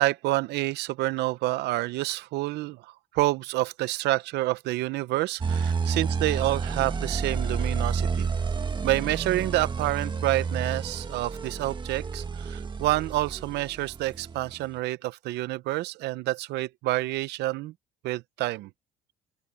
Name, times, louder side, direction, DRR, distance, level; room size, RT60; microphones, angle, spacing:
voice 1, 0.0-8.3 8.8-17.7 18.0-18.7, right 17 dB, 80° right, 0.7 m, -28 dB
sound 1, 5.4-14.6, right 5 dB, 25° right, 1.6 m, -30 dB
open air
cardioid pair, 110°, 17 cm